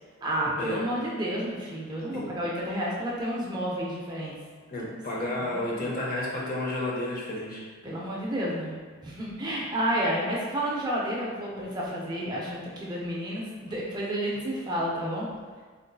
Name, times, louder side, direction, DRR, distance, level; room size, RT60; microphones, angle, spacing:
voice 1, 0.2-4.3 5.4-5.7 7.8-8.8 9.0-15.3, right 1 dB, 20° right, -4 dB, 0.4 m, -30 dB
voice 2, 4.7-7.7, left 1 dB, 40° left, -3 dB, 0.6 m, -31 dB
3.7 x 2.5 x 2.2 m, 1.5 s
head